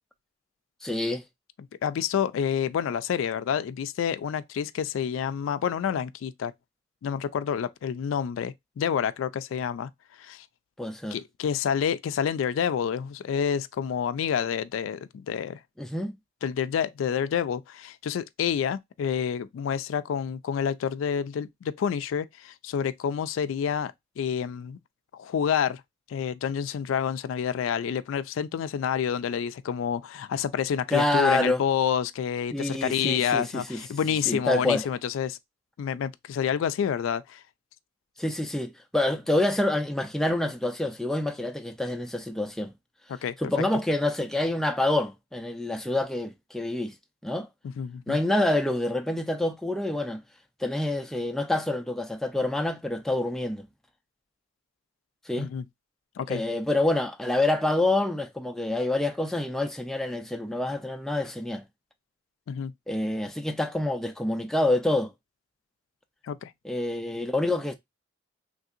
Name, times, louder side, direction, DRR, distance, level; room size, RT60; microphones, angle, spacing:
voice 1, 0.8-1.2 10.8-11.2 15.8-16.1 30.9-31.6 32.5-33.8 34.3-34.9 38.2-42.7 43.4-46.9 47.2-47.5 48.1-50.2 50.6-53.7 55.3-55.5 56.3-61.6 62.9-65.1 66.6-67.7, left 2 dB, ahead, 0.3 m, -27 dB
voice 2, 1.8-6.5 7.0-9.9 10.2-10.5 11.1-15.6 16.4-24.8 25.1-25.8 26.1-35.4 35.8-37.4 43.1-43.4 47.6-48.2 55.4-55.7 56.2-56.4 62.5-62.7 66.2-66.5, left 8 dB, 85° left, 0.3 m, -28 dB
3.3 x 2.7 x 2.4 m
head